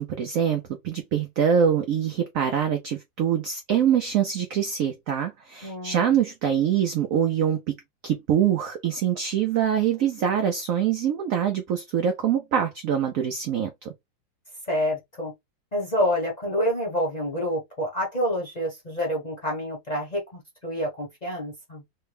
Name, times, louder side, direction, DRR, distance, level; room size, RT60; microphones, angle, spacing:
voice 1, 0.0-7.8 8.0-13.9, right 8 dB, 85° right, 0.7 m, -24 dB
voice 2, 5.6-6.2 14.7-15.3 15.7-21.8, equal, 30° left, 0.8 m, -28 dB
3.4 x 2.2 x 3.2 m
omnidirectional pair, 2.0 m